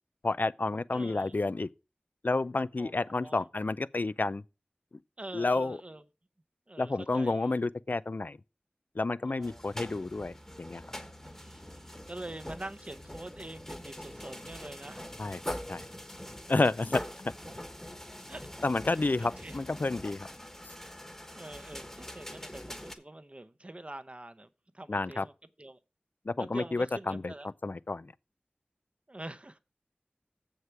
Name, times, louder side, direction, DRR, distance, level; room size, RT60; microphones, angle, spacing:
voice 1, 0.2-1.7 2.2-4.4 5.3-5.8 6.8-8.4 9.0-10.8 15.2-15.4 15.7-15.8 16.5-17.3 18.6-20.3 24.9-25.3 26.3-27.3 27.6-28.1, left 3 dB, 55° left, 0.4 m, -30 dB
voice 2, 0.9-1.4 2.8-2.9 3.2-3.5 5.2-6.0 6.7-7.5 9.2-9.6 11.2-15.1 17.0-17.1 17.5-17.6 18.3-18.5 18.9-19.6 21.3-24.5 24.7-25.3 25.6-25.8 26.4-27.5 29.1-29.6, right 1 dB, 35° right, 0.8 m, -45 dB
sound 1, 9.4-23.0, equal, 10° left, 1.3 m, -43 dB
7.5 x 6.4 x 5.8 m
wide cardioid pair, 50°, 4 cm